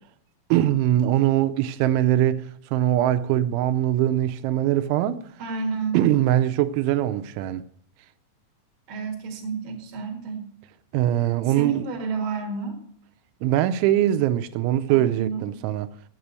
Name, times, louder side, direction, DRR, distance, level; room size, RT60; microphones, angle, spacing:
voice 1, 0.5-2.4 2.7-5.2 5.9-7.6 10.9-11.9 13.4-15.9, right 12 dB, 90° right, 3.1 m, -22 dB
voice 2, 5.4-6.0 8.9-10.5 11.4-12.8 14.9-15.4, right 4 dB, 55° right, 1.4 m, -30 dB
8.7 x 8.2 x 7.6 m
omnidirectional pair, 5.3 m